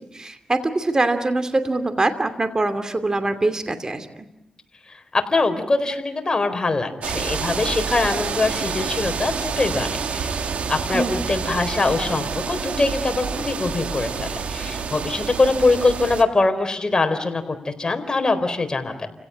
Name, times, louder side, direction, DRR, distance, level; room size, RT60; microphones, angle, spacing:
voice 1, 0.1-4.3 10.9-11.2, right 2 dB, 30° right, 9 dB, 2.6 m, -23 dB
voice 2, 4.9-19.1, left 3 dB, 35° left, 7 dB, 4.1 m, -23 dB
sound 1, 7.0-16.2, right 6 dB, 85° right, 1.7 m, -28 dB
29.5 x 17.0 x 9.8 m, 0.82 s
cardioid pair, 65°, 2 cm